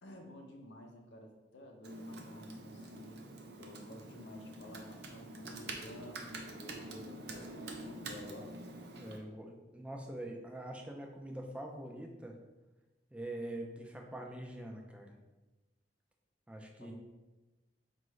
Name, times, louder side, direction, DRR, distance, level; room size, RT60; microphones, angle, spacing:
voice 1, 0.0-3.2 3.6-7.5 7.8-8.5 16.8-16.9, left 1 dB, 75° left, 2 dB, 0.6 m, -51 dB
Computer keyboard, 1.8-9.2, right 2 dB, 60° right, 0.5 m, -46 dB
voice 2, 9.0-12.4 13.1-15.1 16.5-16.9, right 1 dB, 5° right, 1 dB, 0.4 m, -44 dB
4.6 x 2.5 x 3.1 m, 1.1 s
head